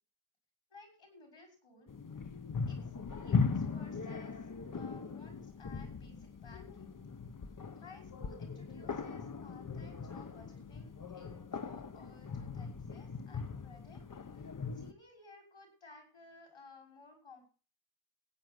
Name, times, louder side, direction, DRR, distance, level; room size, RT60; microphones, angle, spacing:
voice 1, 0.7-1.9 2.7-4.4 4.7-7.0 7.8-14.0 14.3-17.5, left 3 dB, 80° left, 3 dB, 6.1 m, -57 dB
sound 1, 1.9-14.9, left 5 dB, 40° left, 1.0 m, -39 dB
15.5 x 9.4 x 6.1 m, 0.39 s
wide cardioid pair, 135°, 49 cm